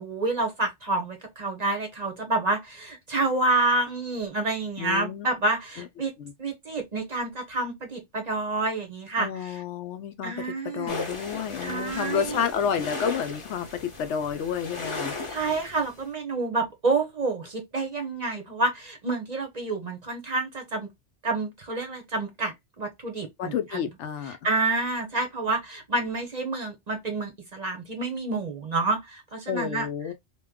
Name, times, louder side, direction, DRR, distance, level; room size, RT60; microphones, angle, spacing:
voice 1, 0.0-6.1 6.4-9.6 10.2-11.0 11.6-12.4 15.3-20.9 21.2-23.5 24.4-29.9, right 3 dB, 45° right, 0.7 m, -28 dB
voice 2, 4.8-5.3 5.8-5.9 6.2-6.3 9.2-15.2 23.4-24.4 29.5-30.1, left 8 dB, 75° left, 0.9 m, -30 dB
sound 1, 10.9-16.0, left 3 dB, 30° left, 0.8 m, -36 dB
2.9 x 2.2 x 3.4 m
omnidirectional pair, 1.2 m